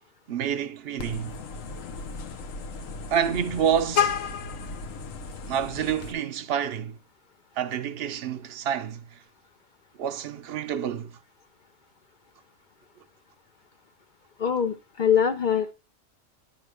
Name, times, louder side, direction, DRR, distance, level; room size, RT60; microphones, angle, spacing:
voice 1, 0.3-1.4 3.1-4.3 5.5-7.0 7.6-9.2 10.0-11.2, right 8 dB, 55° right, 0.8 m, -28 dB
Vehicle horn car horn honking, 1.0-6.1, left 6 dB, 75° left, 1.2 m, -32 dB
voice 2, 14.4-15.7, left 8 dB, 55° left, 0.6 m, -23 dB
10.5 x 3.7 x 4.8 m
omnidirectional pair, 1.4 m